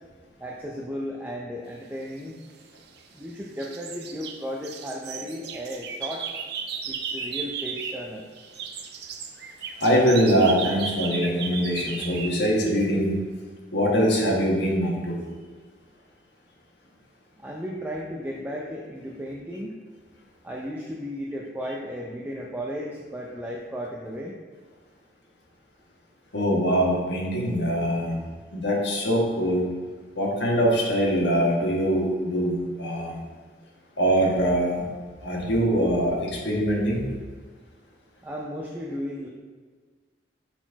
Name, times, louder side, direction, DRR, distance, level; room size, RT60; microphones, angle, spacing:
voice 1, 0.4-2.4 3.2-6.3 6.9-8.3 17.4-19.8 20.4-24.3 38.2-39.3, equal, 10° right, -2 dB, 0.5 m, -35 dB
sound 1, 2.4-3.3 3.6-8.1 8.3-12.4, right 6 dB, 60° right, 0.5 m, -35 dB
voice 2, 9.8-13.2 13.7-15.2 26.3-28.2 28.5-29.7 30.1-33.2 34.0-34.8 35.2-37.1, equal, 70° left, -3 dB, 1.4 m, -23 dB
6.0 x 4.2 x 4.6 m, 1.5 s
head